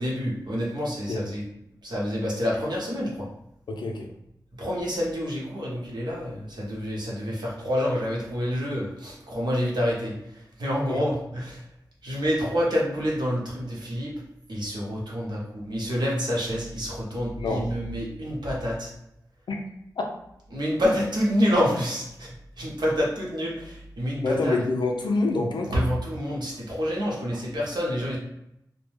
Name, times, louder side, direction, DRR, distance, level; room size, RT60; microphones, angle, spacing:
voice 1, 0.0-1.4 1.8-3.3 4.6-11.6 12.0-14.1 14.5-18.9 20.5-24.6 25.7-28.2, equal, 70° right, -4 dB, 0.9 m, -28 dB
voice 2, 3.7-4.1 10.9-11.0 17.4-17.7 19.5-19.7 20.0-20.1 24.2-25.8, left 2 dB, 80° left, 3 dB, 0.4 m, -27 dB
2.2 x 2.1 x 3.1 m, 0.81 s
cardioid pair, 50°, 8 cm